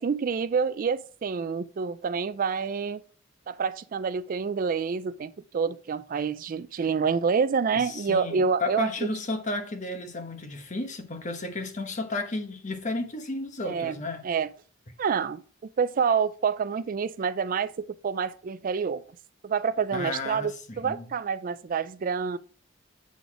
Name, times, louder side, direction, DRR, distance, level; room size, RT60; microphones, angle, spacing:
voice 1, 0.0-3.0 3.5-8.9 13.7-14.0 14.2-14.5 15.0-19.0 19.4-22.4, right 6 dB, 45° right, 0.4 m, -27 dB
voice 2, 7.7-14.3 19.9-21.1, left 2 dB, 40° left, 1.1 m, -33 dB
8.4 x 4.0 x 4.8 m
head